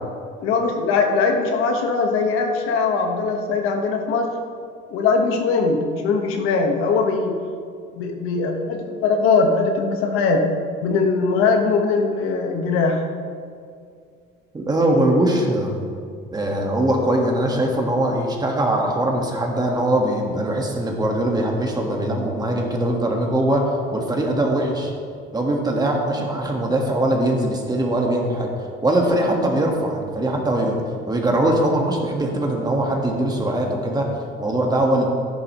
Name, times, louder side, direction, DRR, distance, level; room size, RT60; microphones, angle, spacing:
voice 1, 0.4-4.3 4.9-7.4 7.9-10.4 10.8-13.0, left 4 dB, 85° left, 2 dB, 1.4 m, -21 dB
voice 2, 14.5-15.7 16.3-24.9 25.3-28.5 28.8-35.0, right 1 dB, 20° right, 1 dB, 1.6 m, -21 dB
13.0 x 11.0 x 3.1 m, 2.2 s
cardioid pair, 130°, 21 cm